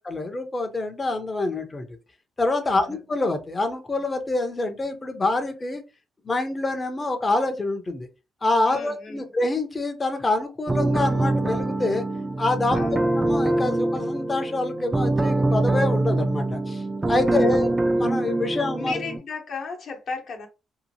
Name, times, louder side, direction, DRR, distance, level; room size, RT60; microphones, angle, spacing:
voice 1, 0.0-1.9 2.4-5.8 6.2-8.1 8.4-12.0 12.4-12.8 13.2-16.8 17.1-19.0, left 2 dB, 25° left, 0.6 m, -26 dB
voice 2, 2.7-3.0 8.7-9.3 12.7-13.1 17.3-17.7 18.8-20.5, left 4 dB, 60° left, 0.9 m, -35 dB
sound 1, 10.7-19.2, right 2 dB, 20° right, 0.4 m, -24 dB
2.8 x 2.5 x 2.7 m
cardioid pair, 90°, 0 cm